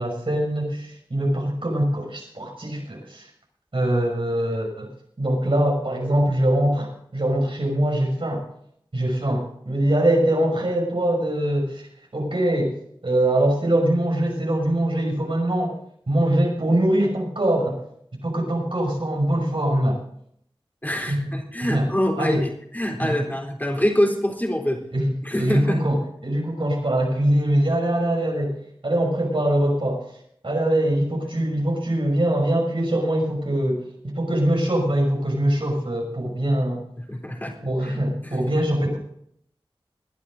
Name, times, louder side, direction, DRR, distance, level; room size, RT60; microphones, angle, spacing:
voice 1, 0.0-3.3 3.7-4.9 5.2-8.4 8.9-11.8 12.1-12.8 13.0-15.8 16.1-17.8 18.2-20.0 21.1-21.3 21.6-21.9 22.2-22.5 23.0-23.2 24.9-30.1 30.4-36.8 37.6-39.0, right 1 dB, 65° right, 0 dB, 6.0 m, -23 dB
voice 2, 20.8-22.5 22.7-24.8 25.2-25.8 37.1-37.5 37.8-38.0 38.3-38.4, equal, 20° left, 0 dB, 3.8 m, -25 dB
20.0 x 11.0 x 3.9 m, 0.67 s
wide cardioid pair, 40°, 10 cm